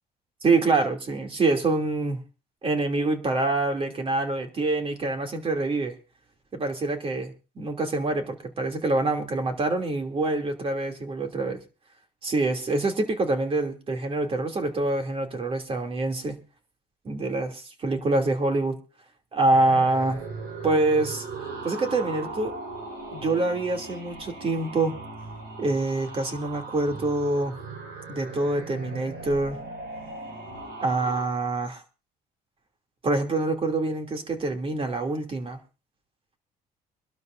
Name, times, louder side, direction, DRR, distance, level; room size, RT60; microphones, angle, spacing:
voice 1, 0.4-2.2 2.6-5.9 6.5-11.6 12.2-16.4 17.0-18.8 19.3-20.2 20.6-21.2 21.6-22.5 23.1-25.0 25.6-27.5 28.1-29.6 30.8-31.8 33.0-35.6, right 2 dB, 35° right, 5 dB, 2.8 m, -25 dB
sound 1, 19.5-31.3, right 3 dB, 70° right, 4.8 m, -38 dB
26.0 x 12.5 x 2.6 m, 0.32 s
cardioid pair, 110°, 17 cm